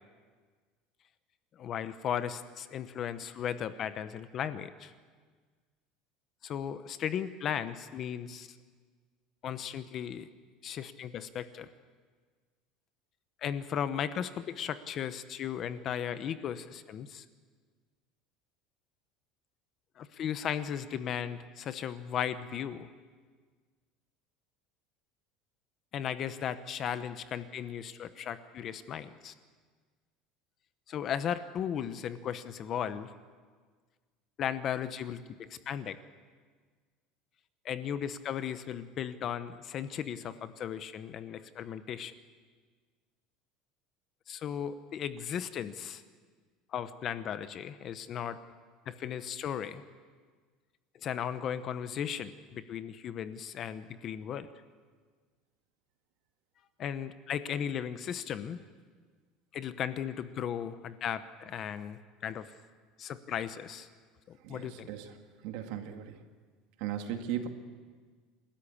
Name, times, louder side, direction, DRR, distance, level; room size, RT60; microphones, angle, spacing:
voice 1, 1.6-4.9 6.4-8.5 9.4-10.3 10.6-11.7 13.4-17.2 20.0-22.9 25.9-29.3 30.9-33.1 34.4-36.0 37.6-42.1 44.3-46.0 46.7-48.4 48.9-49.8 51.0-54.5 56.8-58.6 59.5-62.5 63.0-63.9 64.3-64.9, left 9 dB, 30° left, 12 dB, 0.8 m, -36 dB
voice 2, 64.4-65.1 65.4-66.2 66.8-67.5, right 10 dB, 60° right, 5 dB, 2.2 m, -37 dB
29.0 x 13.0 x 8.5 m, 1.5 s
cardioid pair, 170°, 0 cm